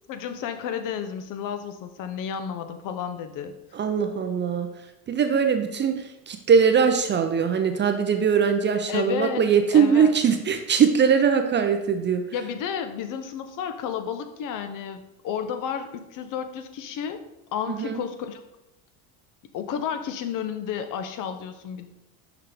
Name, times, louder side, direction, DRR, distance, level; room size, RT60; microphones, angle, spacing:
voice 1, 0.1-3.6 8.9-10.1 12.3-17.2 17.5-18.4 19.5-21.9, left 8 dB, 50° left, 9 dB, 0.8 m, -32 dB
voice 2, 3.7-4.7 5.1-12.2 17.7-18.0, right 6 dB, 25° right, 6 dB, 0.5 m, -21 dB
5.8 x 5.7 x 3.4 m, 0.90 s
supercardioid pair, 105°, 41 cm